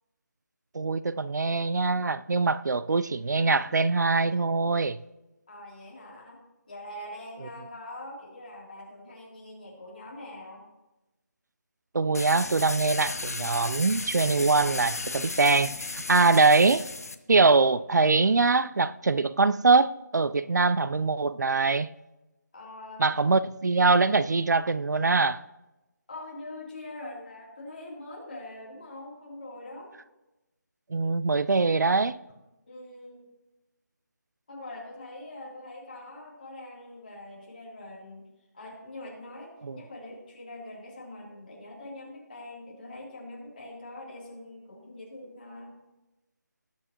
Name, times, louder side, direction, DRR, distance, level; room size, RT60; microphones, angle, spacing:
voice 1, 0.7-5.0 11.9-16.8 17.3-21.9 23.0-25.4 30.9-32.2 39.6-39.8, right 3 dB, 70° right, 0.4 m, -23 dB
voice 2, 5.5-6.4 6.7-10.6 22.5-23.0 26.1-29.9 32.7-33.3 34.5-38.3 38.5-45.7, left 1 dB, 30° left, 3.1 m, -43 dB
sound 1, 12.1-17.1, left 3 dB, 55° left, 0.8 m, -35 dB
18.5 x 8.9 x 2.9 m
figure-of-eight pair, 175°, 10 cm